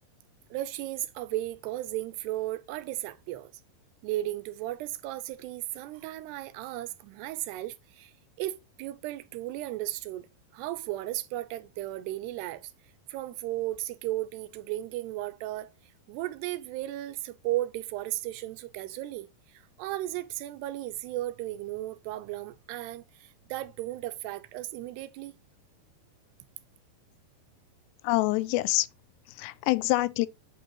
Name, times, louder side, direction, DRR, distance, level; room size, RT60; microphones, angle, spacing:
voice 1, 0.5-3.5 4.0-8.1 8.4-10.3 10.5-12.7 13.1-15.7 16.1-25.3, right 15 dB, 85° right, 2.7 m, -35 dB
voice 2, 28.0-28.9 29.3-30.3, left 19 dB, 90° left, 2.7 m, -26 dB
8.3 x 5.3 x 2.9 m
omnidirectional pair, 4.8 m